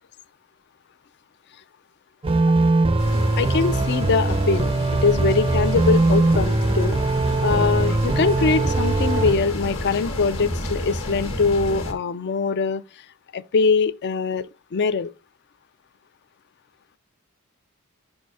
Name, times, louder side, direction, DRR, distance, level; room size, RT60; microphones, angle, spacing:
sound 1, 2.2-9.3, right 2 dB, 25° right, 0.5 m, -21 dB
sound 2, 3.0-11.9, left 1 dB, 65° left, 1.6 m, -30 dB
voice 1, 3.4-4.7 5.0-7.0 7.4-12.8 13.3-14.5 14.7-15.1, left 4 dB, 50° left, 0.4 m, -22 dB
5.5 x 4.4 x 4.7 m
head